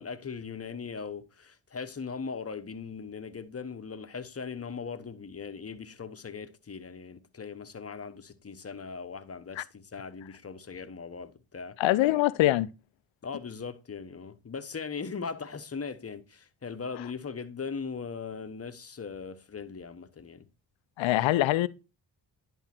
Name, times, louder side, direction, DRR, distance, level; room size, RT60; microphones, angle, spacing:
voice 1, 0.0-11.8 13.2-20.5, left 5 dB, 30° left, 1.0 m, -39 dB
voice 2, 11.8-12.7 21.0-21.7, left 15 dB, 80° left, 0.6 m, -23 dB
10.5 x 3.6 x 4.3 m
supercardioid pair, 50°, 45 cm